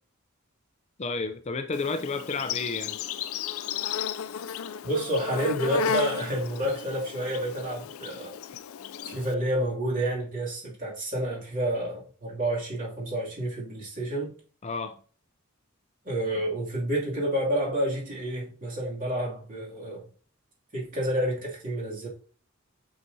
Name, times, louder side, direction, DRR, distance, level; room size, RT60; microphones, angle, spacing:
voice 1, 1.0-3.0 14.6-15.0, left 4 dB, 30° left, 0.5 m, -31 dB
Insect, 1.7-9.3, left 8 dB, 85° left, 0.4 m, -34 dB
voice 2, 4.8-8.3 9.1-14.3 16.0-20.0 20.7-22.1, right 1 dB, 40° right, 2.8 m, -29 dB
8.1 x 5.8 x 2.8 m
head